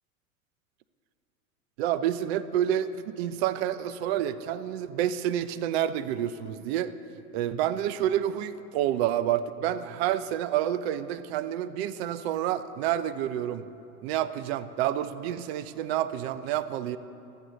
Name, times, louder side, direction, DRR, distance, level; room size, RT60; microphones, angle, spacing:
voice 1, 1.8-6.9 7.3-13.6 14.0-17.0, right 11 dB, 45° right, 14 dB, 0.5 m, -29 dB
13.0 x 7.6 x 3.9 m, 2.7 s
hypercardioid pair, 100°, 43 cm